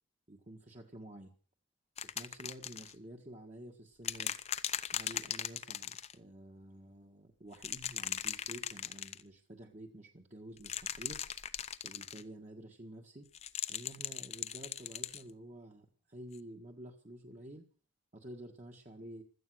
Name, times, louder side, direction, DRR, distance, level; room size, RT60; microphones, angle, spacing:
voice 1, 0.3-1.3 2.0-4.3 4.9-11.2 11.8-13.3 13.7-17.7 18.1-19.2, right 1 dB, 35° right, 1 dB, 1.7 m, -50 dB
sound 1, 2.0-2.9 4.0-6.1 7.5-9.2 10.6-12.2 13.4-15.2 16.3-16.4, left 9 dB, 30° left, 0.7 m, -39 dB
16.5 x 13.0 x 6.4 m, 0.43 s
head